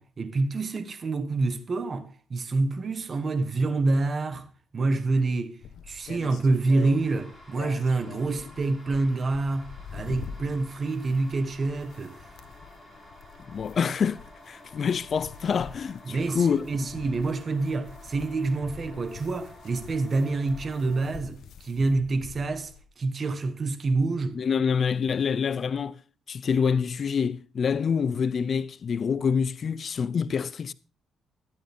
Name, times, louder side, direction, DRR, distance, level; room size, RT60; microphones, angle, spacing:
voice 1, 0.0-4.5 4.7-5.6 5.9-12.2 16.1-22.7 23.0-24.4, right 3 dB, 40° right, 1.5 m, -27 dB
sound 1, 5.6-22.8, left 7 dB, 70° left, 1.1 m, -45 dB
sound 2, 6.3-21.1, left 1 dB, 5° right, 5.7 m, -51 dB
voice 2, 13.5-14.2 14.5-16.9 24.3-26.0 26.3-30.7, left 6 dB, 50° left, 0.5 m, -26 dB
13.0 x 11.5 x 3.6 m
cardioid pair, 90°, 0 cm